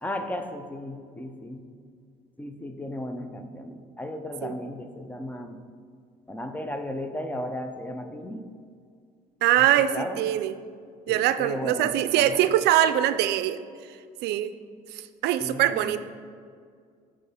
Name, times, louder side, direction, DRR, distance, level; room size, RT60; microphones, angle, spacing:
voice 1, 0.0-1.6 2.4-5.6 6.3-8.5 9.6-9.7 9.9-10.3 11.1-12.5 15.4-16.0, left 1 dB, 10° left, 6 dB, 0.5 m, -35 dB
voice 2, 9.4-10.6 11.1-13.6 14.2-14.5 14.9-16.0, right 12 dB, 80° right, 12 dB, 0.4 m, -23 dB
6.7 x 4.9 x 5.0 m, 2.1 s
cardioid pair, 110°, 17 cm